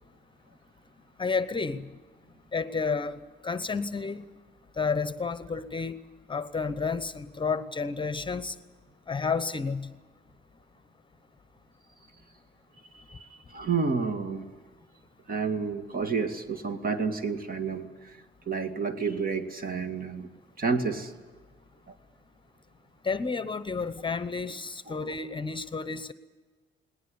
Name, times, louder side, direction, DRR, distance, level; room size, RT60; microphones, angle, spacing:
voice 1, 1.2-1.8 2.5-3.1 3.4-4.2 4.8-6.0 6.3-8.5 9.1-9.9 23.0-26.1, left 4 dB, 25° left, 13 dB, 0.9 m, -30 dB
voice 2, 13.5-14.5 15.3-18.2 18.5-20.3 20.6-21.2, right 5 dB, 45° right, 8 dB, 2.2 m, -30 dB
19.0 x 19.0 x 9.8 m, 1.4 s
cardioid pair, 90°, 20 cm